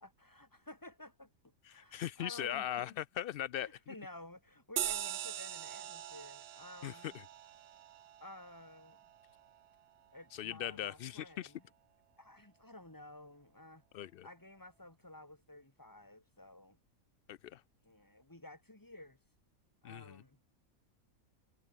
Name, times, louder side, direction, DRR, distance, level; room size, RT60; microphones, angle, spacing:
voice 1, 0.0-1.3 1.7-2.9 3.6-7.1 8.2-9.0 10.1-11.6 12.2-13.8 14.2-16.8 17.8-19.2 19.8-20.4, left 1 dB, 15° left, 2.5 m, -53 dB
voice 2, 1.7-3.7 6.8-7.2 10.3-11.5 13.9-14.3 17.3-17.6 19.8-20.2, left 11 dB, 75° left, 0.5 m, -40 dB
sound 1, 4.8-9.7, right 11 dB, 60° right, 0.7 m, -42 dB
omnidirectional pair, 1.5 m